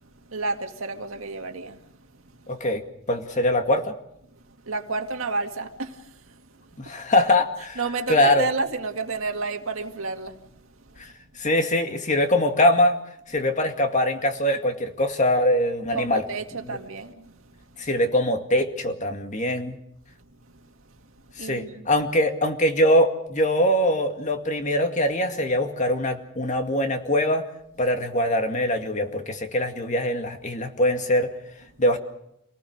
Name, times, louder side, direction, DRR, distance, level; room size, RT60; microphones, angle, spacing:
voice 1, 0.0-2.6 4.3-6.9 7.8-11.1 15.9-17.8 20.4-21.9, right 3 dB, 80° right, 2.1 m, -32 dB
voice 2, 2.5-2.8 3.1-3.9 6.8-7.8 8.1-8.5 11.0-11.1 11.4-13.0 13.3-16.2 17.8-19.8 21.4-27.4 27.8-31.3 31.8-32.0, left 1 dB, 35° left, 2.2 m, -22 dB
27.5 x 19.0 x 6.6 m
head